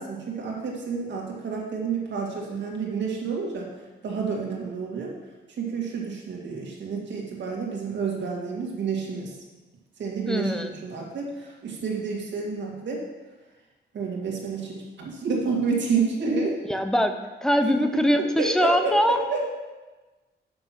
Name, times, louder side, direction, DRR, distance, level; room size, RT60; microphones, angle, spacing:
voice 1, 0.0-3.7 4.0-5.1 5.6-9.3 10.0-13.0 13.9-16.5 17.6-17.7 18.2-19.5, right 5 dB, 80° right, -2 dB, 2.0 m, -29 dB
voice 2, 10.3-10.7 16.7-17.1 17.4-19.2, equal, 5° left, 7 dB, 0.6 m, -22 dB
6.7 x 5.9 x 6.0 m, 1.2 s
wide cardioid pair, 135°, 19 cm